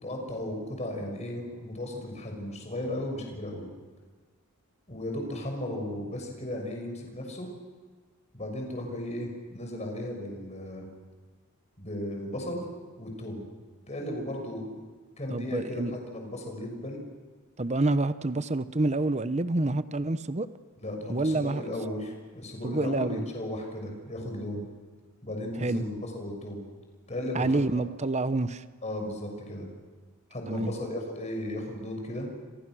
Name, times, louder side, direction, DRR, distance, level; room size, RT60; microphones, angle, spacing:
voice 1, 0.0-3.7 4.9-7.5 8.3-10.9 11.8-12.6 13.0-13.4 13.9-14.8 15.2-17.0 20.8-24.6 25.2-26.6 27.1-27.6 28.8-29.7 30.3-32.3, left 1 dB, 30° left, 2 dB, 6.3 m, -35 dB
voice 2, 15.3-15.9 17.6-20.5 21.1-21.6 22.6-23.2 25.6-25.8 27.3-28.6 30.5-30.7, right 2 dB, 30° right, 13 dB, 0.9 m, -27 dB
28.5 x 28.0 x 6.3 m, 1.5 s
head